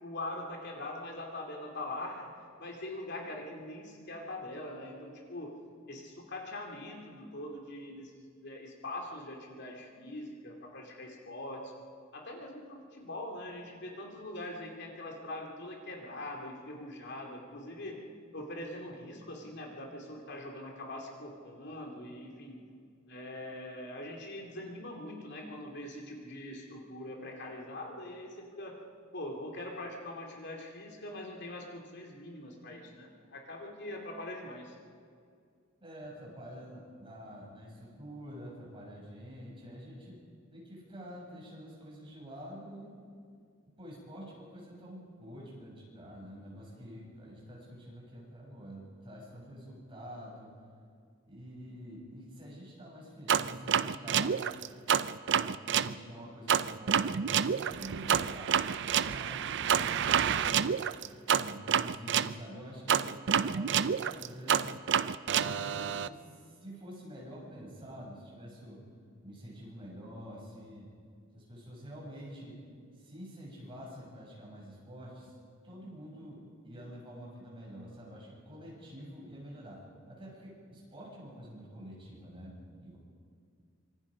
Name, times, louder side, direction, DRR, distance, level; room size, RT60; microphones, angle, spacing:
voice 1, 0.0-2.3 2.6-8.1 8.4-11.7 12.1-18.1 18.3-22.6 23.1-28.8 29.1-34.8, left 1 dB, 55° left, 1 dB, 2.7 m, -42 dB
voice 2, 35.8-40.2 40.5-42.9 43.7-50.5 51.3-54.5 55.3-58.5 58.8-60.8 61.4-64.7 65.4-68.8 69.2-70.9 71.3-72.6 72.9-75.4 75.6-83.0, equal, 25° right, -4 dB, 7.2 m, -47 dB
sound 1, 53.3-55.9 56.5-62.3 62.9-66.1, right 8 dB, 60° right, 0.5 m, -28 dB
25.5 x 23.5 x 5.1 m, 2.2 s
head